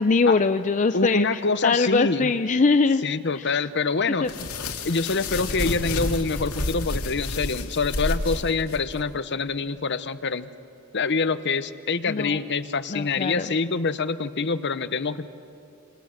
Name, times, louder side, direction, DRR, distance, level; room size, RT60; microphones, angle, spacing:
voice 1, 0.0-3.0 3.4-3.6 4.2-4.3 12.1-12.4 12.9-13.5, left 4 dB, 35° left, 9 dB, 0.5 m, -22 dB
voice 2, 0.9-2.3 3.0-4.3 4.8-10.5 10.9-15.3, left 4 dB, 55° left, 13 dB, 0.9 m, -25 dB
sound 1, 4.3-9.0, left 2 dB, 80° left, 2.3 m, -30 dB
27.5 x 27.0 x 6.5 m, 2.6 s
head